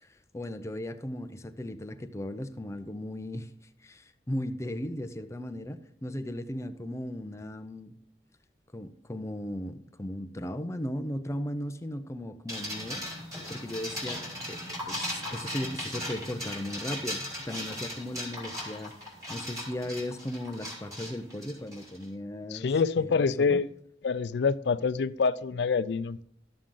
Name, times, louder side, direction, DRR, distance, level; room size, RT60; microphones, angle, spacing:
voice 1, 0.0-3.5 3.8-7.9 8.7-13.0 13.5-18.9 19.3-22.7 23.0-23.1 23.5-23.6, left 1 dB, 15° left, 0.5 m, -37 dB
sound 1, 12.5-22.0, left 1 dB, 20° right, 3.6 m, -38 dB
voice 2, 22.5-23.7 24.0-26.2, left 5 dB, 75° left, 0.4 m, -26 dB
13.0 x 7.4 x 3.8 m
head